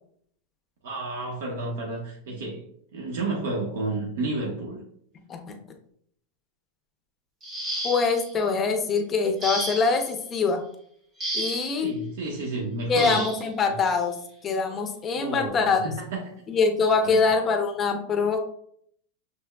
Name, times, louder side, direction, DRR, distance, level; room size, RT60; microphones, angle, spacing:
voice 1, 0.8-2.6 2.9-4.8 11.8-13.2 13.7-13.8 15.1-16.3 17.0-17.2, right 2 dB, 80° right, -1 dB, 1.1 m, -31 dB
sound 1, 7.4-8.3 9.4-10.1 11.2-11.8 13.0-13.4 14.6-14.8 15.3-15.5, right 1 dB, 25° right, 1.9 m, -32 dB
voice 2, 7.8-10.6 11.3-11.9 12.9-14.2 14.4-15.8 16.5-18.4, left 4 dB, 20° left, 5 dB, 0.5 m, -24 dB
5.8 x 3.5 x 2.2 m, 0.66 s
supercardioid pair, 155°, 0 cm